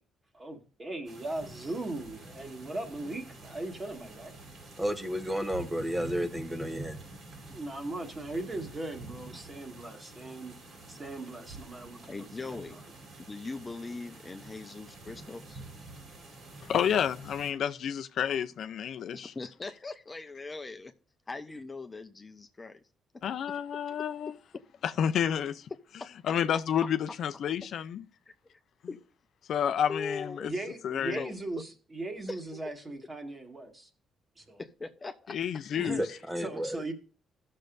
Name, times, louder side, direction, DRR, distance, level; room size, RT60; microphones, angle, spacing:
voice 1, 0.3-4.3 7.5-12.8 30.4-33.9 34.4-34.6 35.7-36.0 36.4-36.9, right 2 dB, 30° right, 1.8 m, -39 dB
sound 1, 1.1-17.5, right 2 dB, 60° right, 3.2 m, -47 dB
voice 2, 4.8-6.9 36.0-36.8, equal, 15° right, 1.1 m, -32 dB
voice 3, 12.1-12.8 13.2-15.6 19.1-20.9 21.3-22.8 26.0-26.1 28.9-29.0 29.9-30.5 31.1-31.6 32.3-32.9 34.6-35.4, left 3 dB, 25° left, 0.8 m, -40 dB
voice 4, 16.6-19.3 23.2-24.4 24.8-25.7 26.2-28.0 29.5-30.5 30.8-31.2 35.3-36.0, left 8 dB, 70° left, 0.5 m, -30 dB
15.5 x 6.5 x 2.6 m
cardioid pair, 90°, 0 cm